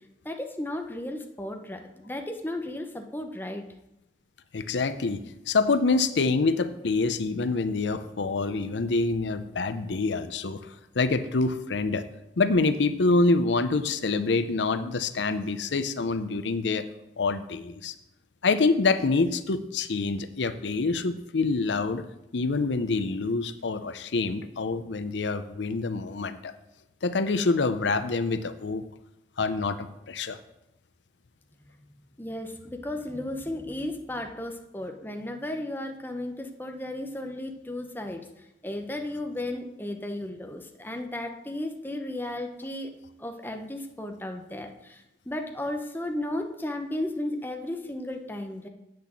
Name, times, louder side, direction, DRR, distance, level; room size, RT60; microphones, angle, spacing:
voice 1, 0.2-3.6 32.2-42.9 43.2-48.7, left 1 dB, 10° left, 4 dB, 0.8 m, -34 dB
voice 2, 4.5-5.2 5.5-10.6 11.0-12.0 12.4-16.9 17.2-17.9 18.4-22.0 22.3-26.5 27.0-28.8 29.4-30.4, left 3 dB, 90° left, 12 dB, 0.6 m, -26 dB
8.3 x 6.3 x 7.2 m, 0.88 s
head